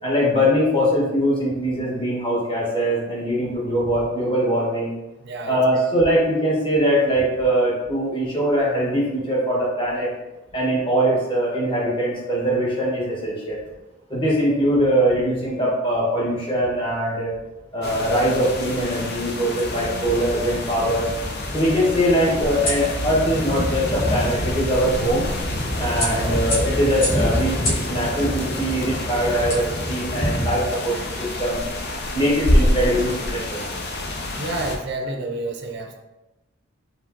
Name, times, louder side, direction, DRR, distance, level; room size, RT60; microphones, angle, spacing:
voice 1, 0.0-4.9 5.5-10.1 10.5-13.6 14.1-17.3 17.7-21.1 21.5-25.3 25.8-31.6 32.1-33.6, equal, 25° left, -5 dB, 1.4 m, -22 dB
voice 2, 5.2-5.6 31.1-31.2 34.4-36.0, right 2 dB, 55° right, 4 dB, 0.5 m, -29 dB
sound 1, 17.8-34.8, left 1 dB, 55° left, 0.6 m, -28 dB
sound 2, 19.5-30.5, equal, 10° left, 1.0 m, -29 dB
sound 3, 20.4-30.3, left 1 dB, 85° left, 1.4 m, -34 dB
5.1 x 3.1 x 2.8 m, 1.0 s
head